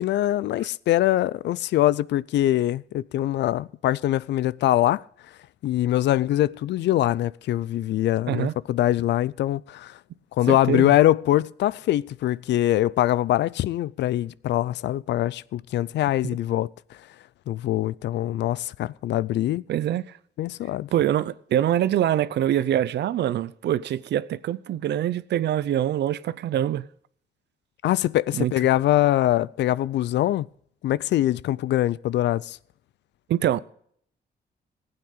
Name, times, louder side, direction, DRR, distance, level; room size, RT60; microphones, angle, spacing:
voice 1, 0.0-5.0 5.6-9.9 10.4-16.7 17.5-19.6 20.4-20.9 27.8-30.5 30.8-32.6, left 14 dB, 75° left, 0.4 m, -23 dB
voice 2, 10.5-10.9 19.7-20.0 20.9-26.9 28.3-28.5 33.3-33.6, right 11 dB, 75° right, 0.6 m, -24 dB
15.5 x 8.9 x 4.9 m
cardioid pair, 90°, 18 cm